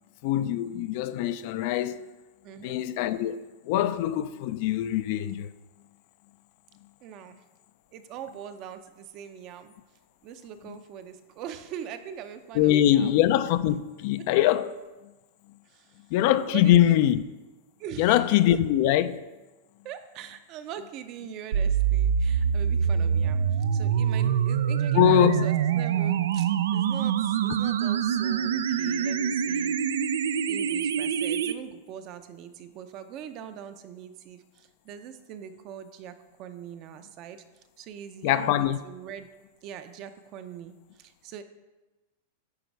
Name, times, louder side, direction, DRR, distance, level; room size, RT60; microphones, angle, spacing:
voice 1, 0.2-2.0 2.6-3.4 3.7-5.5 12.5-14.8 16.1-17.2 18.0-19.2 24.9-25.5 38.2-38.8, left 12 dB, 50° left, 0.4 m, -23 dB
voice 2, 2.4-2.8 7.0-7.4 7.9-9.7 10.2-13.2 14.1-14.3 15.7-15.9 16.5-17.0 17.8-18.6 19.8-23.4 23.7-29.8 30.5-36.1 36.4-37.4 37.8-39.3 39.6-41.4, right 8 dB, 40° right, 0.6 m, -42 dB
sound 1, 21.5-31.5, right 8 dB, 85° right, 0.4 m, -25 dB
9.5 x 4.0 x 4.6 m
supercardioid pair, 145°, 0 cm